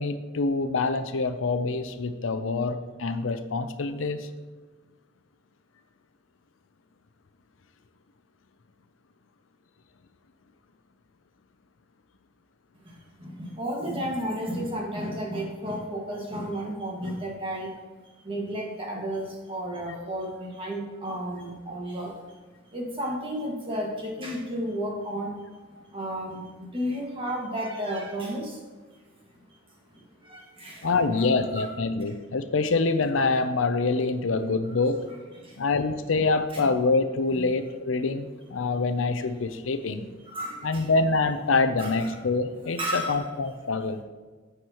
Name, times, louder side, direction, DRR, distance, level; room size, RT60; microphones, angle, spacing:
voice 1, 0.0-4.3 30.8-35.1 35.6-40.1 40.6-44.0, left 3 dB, 85° left, 10 dB, 0.6 m, -26 dB
voice 2, 12.8-17.7 18.2-22.4 22.7-25.3 25.7-28.6 29.9-31.2 31.5-31.7 34.6-34.7 35.4-35.7 36.5-36.7 37.3-37.5 40.3-40.9 41.8-42.1 42.7-43.3, equal, 30° right, -2 dB, 1.8 m, -33 dB
10.0 x 7.9 x 3.0 m, 1.4 s
head